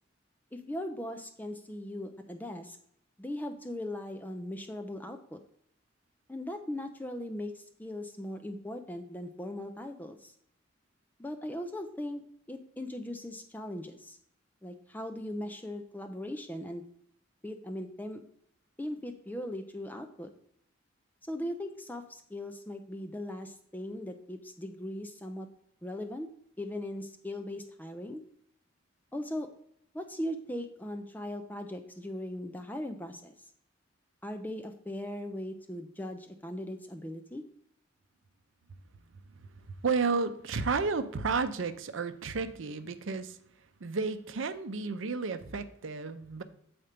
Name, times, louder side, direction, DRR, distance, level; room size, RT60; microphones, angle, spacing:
voice 1, 0.5-2.8 3.2-5.4 6.3-10.3 11.2-12.2 12.5-14.2 14.6-16.8 17.4-18.2 18.8-20.3 21.3-25.5 25.8-26.3 26.6-28.2 29.1-29.5 29.9-33.3 34.2-37.4, left 1 dB, 10° left, 7 dB, 0.4 m, -39 dB
voice 2, 39.8-43.4 43.8-46.4, right 4 dB, 75° right, 11 dB, 0.6 m, -32 dB
7.9 x 4.3 x 5.0 m, 0.70 s
head